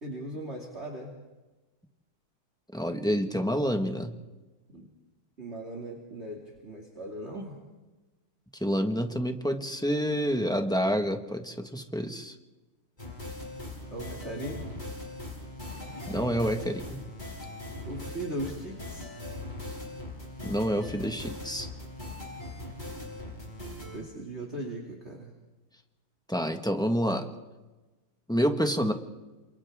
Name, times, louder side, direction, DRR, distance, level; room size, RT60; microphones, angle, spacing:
voice 1, 0.0-1.1 4.7-4.9 5.4-7.6 13.9-14.7 17.9-19.1 23.9-25.3, right 1 dB, 30° right, -1 dB, 3.0 m, -38 dB
voice 2, 2.7-4.1 8.6-12.3 16.1-17.0 20.4-21.7 26.3-27.3 28.3-28.9, equal, ahead, 5 dB, 1.3 m, -28 dB
sound 1, 13.0-24.0, left 1 dB, 20° left, 5.8 m, -40 dB
29.0 x 27.5 x 3.7 m, 1.1 s
omnidirectional pair, 2.3 m